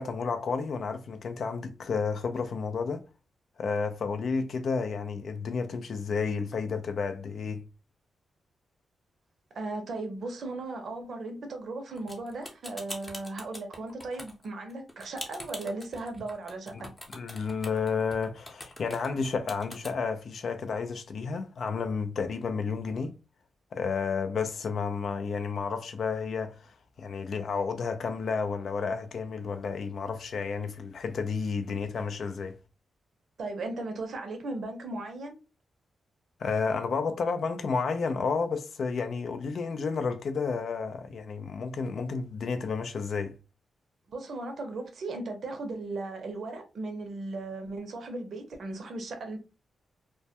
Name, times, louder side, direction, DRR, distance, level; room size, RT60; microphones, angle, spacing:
voice 1, 0.0-3.0 3.6-7.6 16.7-16.8 17.1-23.1 23.7-32.5 36.4-43.3, left 5 dB, 65° left, 0.4 m, -31 dB
voice 2, 9.5-16.9 33.4-35.4 44.1-49.4, right 2 dB, 65° right, 0.6 m, -37 dB
sound 1, 12.0-19.9, left 1 dB, 20° left, 0.7 m, -43 dB
2.1 x 2.1 x 2.6 m
cardioid pair, 85°, 0 cm